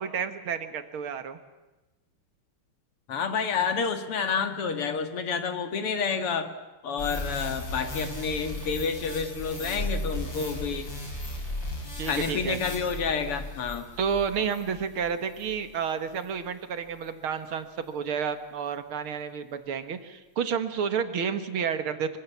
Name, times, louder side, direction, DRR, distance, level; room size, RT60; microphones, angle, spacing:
voice 1, 0.0-1.4 7.1-7.3 12.0-12.6 14.0-22.2, right 7 dB, 70° right, 9 dB, 2.3 m, -30 dB
voice 2, 3.1-6.5 6.8-10.9 12.0-13.8, left 5 dB, 85° left, 8 dB, 2.8 m, -29 dB
sound 1, 7.0-15.6 16.1-16.3, left 1 dB, 55° left, 6.8 m, -36 dB
25.5 x 25.0 x 7.3 m, 1.1 s
omnidirectional pair, 2.4 m